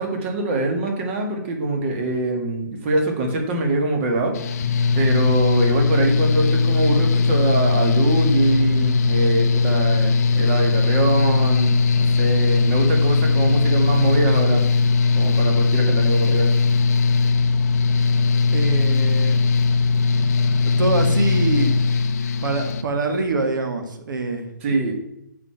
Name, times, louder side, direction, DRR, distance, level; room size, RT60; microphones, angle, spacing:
voice 1, 0.0-4.4 4.9-14.6 15.1-16.5 24.6-24.9, right 2 dB, 35° right, 3 dB, 1.8 m, -23 dB
Mechanical fan, 4.3-22.8, left 4 dB, 50° left, 0.6 m, -19 dB
voice 2, 18.5-19.4 20.8-21.8 22.4-24.9, right 3 dB, 70° right, 5 dB, 1.6 m, -24 dB
6.9 x 5.0 x 5.7 m, 0.81 s
hypercardioid pair, 150°, 11 cm